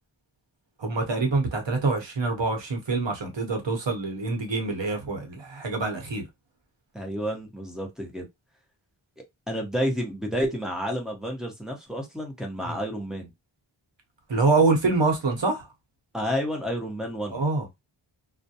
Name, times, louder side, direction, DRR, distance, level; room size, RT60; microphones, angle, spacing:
voice 1, 0.8-6.2 12.6-12.8 14.3-15.7 17.3-17.7, right 3 dB, 65° right, 1.1 m, -25 dB
voice 2, 6.9-8.3 9.5-13.3 16.1-17.4, equal, ahead, 0.9 m, -30 dB
2.4 x 2.1 x 2.8 m
wide cardioid pair, 60°, 49 cm